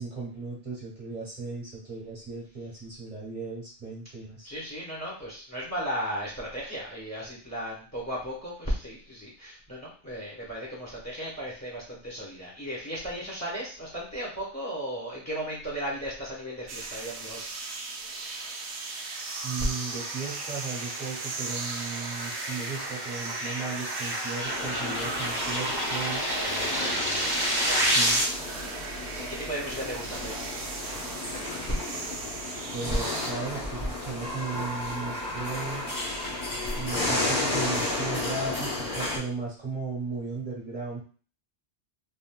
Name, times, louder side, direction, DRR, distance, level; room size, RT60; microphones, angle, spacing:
voice 1, 0.0-4.5 19.4-26.3 27.8-28.2 32.7-35.9 36.8-41.0, right 4 dB, 45° right, -6 dB, 1.4 m, -36 dB
voice 2, 4.4-17.7 28.8-30.4 36.6-36.7, equal, 15° left, -4 dB, 1.0 m, -35 dB
sound 1, 16.7-33.3, right 3 dB, 80° right, 0.9 m, -38 dB
sound 2, 19.4-28.2, right 1 dB, 25° right, 0.9 m, -30 dB
sound 3, 24.4-39.2, left 2 dB, 50° left, 1.4 m, -33 dB
3.3 x 2.6 x 2.2 m, 0.40 s
omnidirectional pair, 1.1 m